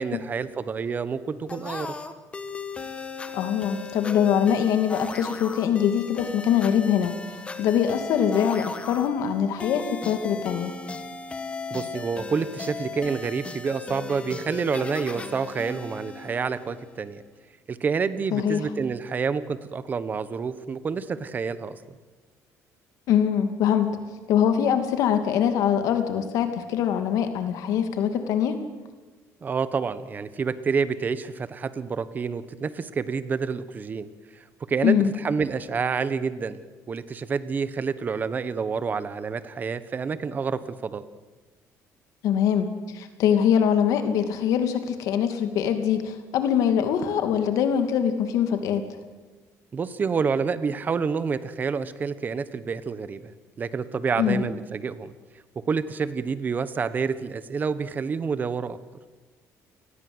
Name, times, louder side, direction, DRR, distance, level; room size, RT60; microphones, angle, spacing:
voice 1, 0.0-1.9 11.7-17.2 17.7-21.8 29.4-34.1 34.7-36.6 36.9-41.0 49.7-53.3 53.6-55.1 55.7-58.8, right 5 dB, 30° right, 14 dB, 1.4 m, -28 dB
sound 1, 1.5-17.0, left 4 dB, 20° left, 1.7 m, -37 dB
voice 2, 3.3-7.1 7.6-10.7 18.3-18.6 23.1-23.9 24.3-28.6 34.8-35.1 42.2-48.8 54.2-54.4, left 8 dB, 75° left, 7 dB, 2.6 m, -23 dB
28.0 x 20.0 x 8.1 m, 1.2 s
cardioid pair, 140°, 6 cm